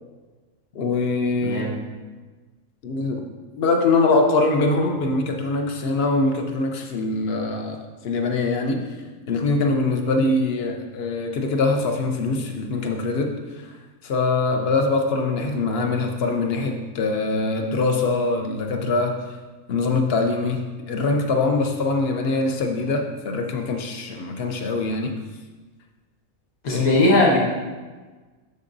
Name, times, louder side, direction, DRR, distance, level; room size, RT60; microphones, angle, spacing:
voice 1, 0.7-1.7 2.8-3.2 3.6-8.8 9.3-13.7 14.0-19.2 19.7-25.2 26.7-27.0, left 3 dB, 55° left, 4 dB, 0.8 m, -23 dB
voice 2, 26.6-27.4, left 1 dB, 90° left, -3 dB, 1.7 m, -18 dB
12.0 x 4.0 x 2.6 m, 1.3 s
omnidirectional pair, 1.5 m